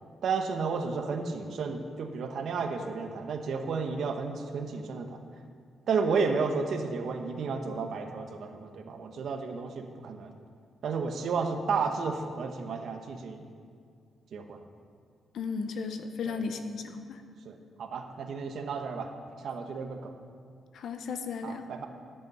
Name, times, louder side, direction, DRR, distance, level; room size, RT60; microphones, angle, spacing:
voice 1, 0.2-5.2 5.9-10.3 10.8-13.4 14.3-14.6 16.3-16.4 17.4-19.1 19.4-20.1 21.4-21.9, right 5 dB, 60° right, 5 dB, 1.0 m, -32 dB
voice 2, 15.3-17.2 20.7-21.6, left 5 dB, 70° left, 7 dB, 0.9 m, -35 dB
13.5 x 8.3 x 5.5 m, 2.3 s
wide cardioid pair, 155°, 0 cm